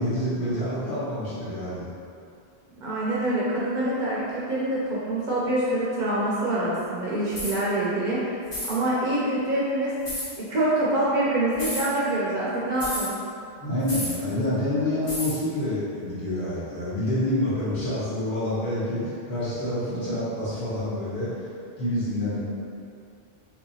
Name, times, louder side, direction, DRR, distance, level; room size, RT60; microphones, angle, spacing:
voice 1, 0.0-1.9 13.6-21.3 21.8-22.4, left 1 dB, 55° left, -11 dB, 1.2 m, -27 dB
voice 2, 2.8-8.3 8.7-9.9 10.4-13.2, right 1 dB, 55° right, -7 dB, 0.6 m, -25 dB
sound 1, 7.3-7.6 8.5-8.8 10.0-10.3 11.5-11.9 12.8-13.1 13.9-14.2 15.1-15.4, left 1 dB, 30° left, 0.6 m, -31 dB
3.0 x 2.8 x 2.7 m, 2.5 s
omnidirectional pair, 1.1 m